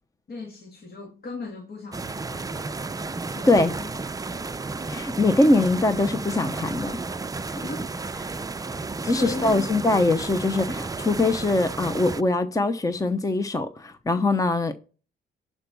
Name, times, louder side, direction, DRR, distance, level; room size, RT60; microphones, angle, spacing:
voice 1, 0.3-4.0 7.5-8.8 9.1-9.6, left 3 dB, 50° left, 2.2 m, -39 dB
sound 1, 1.9-12.2, right 3 dB, 20° right, 0.5 m, -33 dB
voice 2, 4.9-7.0 9.0-14.8, left 2 dB, 15° left, 0.9 m, -22 dB
11.0 x 4.6 x 6.9 m
cardioid pair, 90°, 20 cm